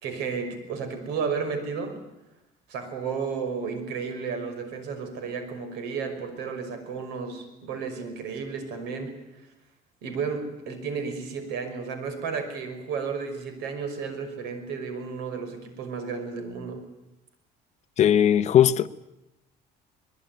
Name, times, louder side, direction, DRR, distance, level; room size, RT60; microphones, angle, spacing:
voice 1, 0.0-2.0 2.7-9.1 10.0-16.8, right 5 dB, 90° right, 5.7 m, -33 dB
voice 2, 18.0-18.9, left 10 dB, 40° left, 0.9 m, -18 dB
24.5 x 21.0 x 9.4 m
cardioid pair, 150°, 17 cm